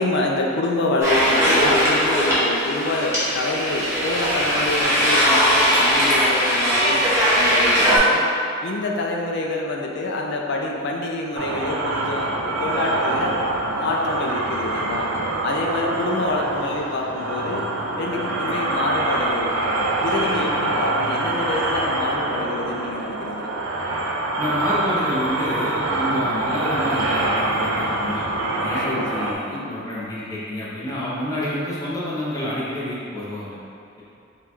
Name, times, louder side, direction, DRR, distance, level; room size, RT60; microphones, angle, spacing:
voice 1, 0.0-7.0 7.3-8.3 8.6-13.4 13.8-15.1 15.4-17.7 18.0-19.7 20.0-23.5 26.1-26.3 28.8-29.9, left 2 dB, 55° left, 0 dB, 0.4 m, -27 dB
sound 1, 1.0-8.0, equal, 15° right, 1.0 m, -19 dB
sound 2, 11.4-29.3, right 2 dB, 80° right, 0.5 m, -25 dB
voice 2, 24.4-28.2 28.5-33.6, equal, 15° left, -8 dB, 0.7 m, -28 dB
3.7 x 2.3 x 4.3 m, 2.6 s
head